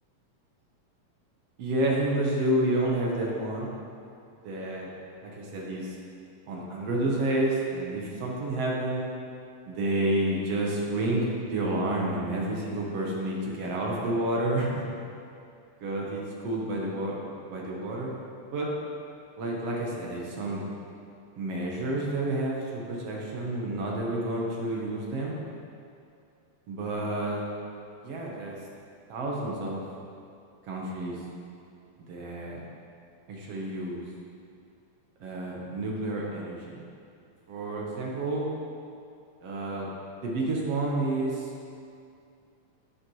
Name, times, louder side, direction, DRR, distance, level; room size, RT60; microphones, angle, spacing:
voice 1, 1.6-3.7 4.4-4.9 5.2-6.0 6.5-9.0 9.7-14.8 15.8-17.2 17.5-18.1 18.5-18.7 19.4-20.6 21.4-25.4 26.7-27.4 28.0-28.6 29.1-29.8 30.7-31.2 32.1-32.6 33.3-34.1 35.2-36.8 37.5-38.5 39.4-39.9 40.2-41.5, right 1 dB, 60° right, -3 dB, 1.9 m, -29 dB
10.0 x 8.4 x 3.1 m, 2.5 s
omnidirectional pair, 3.6 m